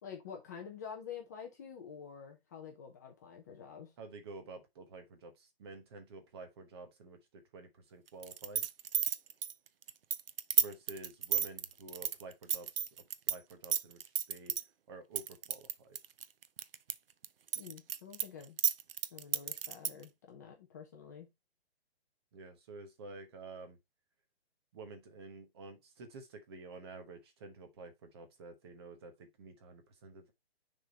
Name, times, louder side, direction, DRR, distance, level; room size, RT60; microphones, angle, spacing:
voice 1, 0.0-3.9 17.6-18.6 19.1-21.3, left 7 dB, 15° left, 0.7 m, -48 dB
voice 2, 4.0-8.6 10.6-12.7 13.3-14.0 14.3-14.5 14.9-16.0 22.3-23.8 24.7-30.3, right 3 dB, 25° right, 1.1 m, -50 dB
sound 1, 8.2-13.4 13.6-14.6 15.2-16.9 17.2-20.0, right 8 dB, 65° right, 0.7 m, -32 dB
6.6 x 3.7 x 4.0 m
hypercardioid pair, 165°, 31 cm